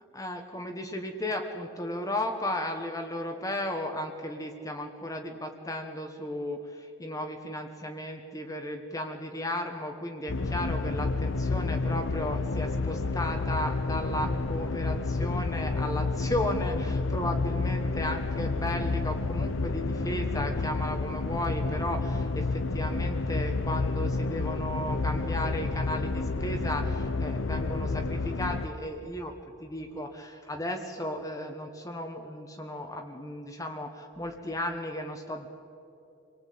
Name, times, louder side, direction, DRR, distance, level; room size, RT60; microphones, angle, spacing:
voice 1, 0.1-29.3 29.6-35.5, left 1 dB, 15° left, 4 dB, 1.3 m, -35 dB
sound 1, 10.3-28.7, left 3 dB, 65° left, 0.9 m, -30 dB
27.0 x 19.5 x 8.6 m, 2.9 s
head